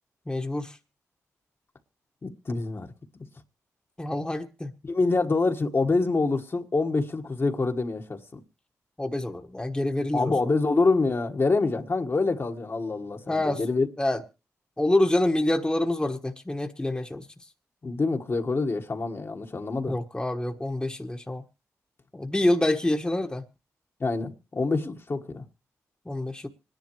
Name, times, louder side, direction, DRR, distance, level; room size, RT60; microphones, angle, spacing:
voice 1, 0.3-0.8 4.0-4.7 9.0-10.3 13.3-13.6 14.0-14.2 14.8-17.3 19.9-21.4 22.1-23.4 26.0-26.5, left 1 dB, 15° left, 1.2 m, -26 dB
voice 2, 2.2-2.9 4.8-8.4 10.1-13.9 17.8-19.9 24.0-25.4, left 3 dB, 45° left, 1.4 m, -26 dB
25.5 x 10.5 x 3.0 m
cardioid pair, 60°, 6 cm